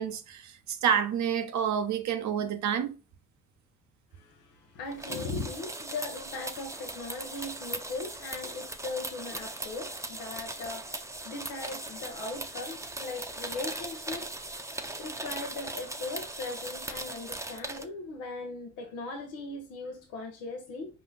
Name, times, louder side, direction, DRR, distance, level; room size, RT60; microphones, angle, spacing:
voice 1, 0.0-2.9, right 8 dB, 65° right, 0.8 m, -29 dB
voice 2, 4.1-21.0, left 3 dB, 90° left, 0.8 m, -39 dB
sound 1, 4.9-17.8, right 2 dB, 10° right, 0.7 m, -39 dB
4.9 x 2.8 x 3.8 m
supercardioid pair, 60°, 31 cm